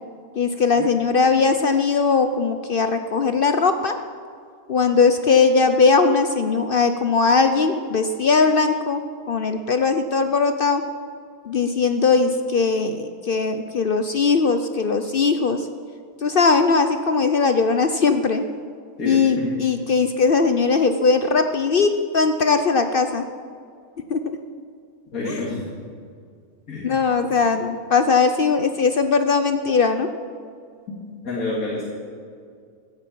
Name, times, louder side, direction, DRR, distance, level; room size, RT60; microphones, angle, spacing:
voice 1, 0.4-4.0 4.7-10.8 11.4-15.7 16.2-18.4 19.0-23.2 24.1-24.2 25.2-25.4 26.8-30.1, left 4 dB, 55° left, 8 dB, 0.6 m, -19 dB
voice 2, 19.0-19.5 25.1-25.7 26.7-27.0 27.3-27.5 30.9-31.0 31.2-31.8, left 2 dB, 75° left, -4 dB, 2.6 m, -28 dB
15.0 x 8.9 x 8.4 m, 2.2 s
omnidirectional pair, 1.5 m